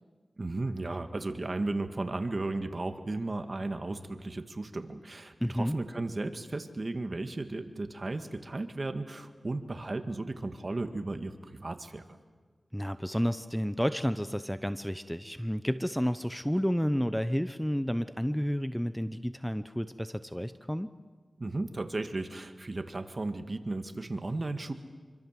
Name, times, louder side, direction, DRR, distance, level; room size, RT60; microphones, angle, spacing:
voice 1, 0.4-12.0 21.4-24.7, right 2 dB, 45° right, 7 dB, 2.0 m, -35 dB
voice 2, 5.4-5.8 12.7-20.9, equal, 5° left, 12 dB, 0.9 m, -31 dB
26.5 x 24.5 x 7.7 m, 1.5 s
cardioid pair, 55°, 0 cm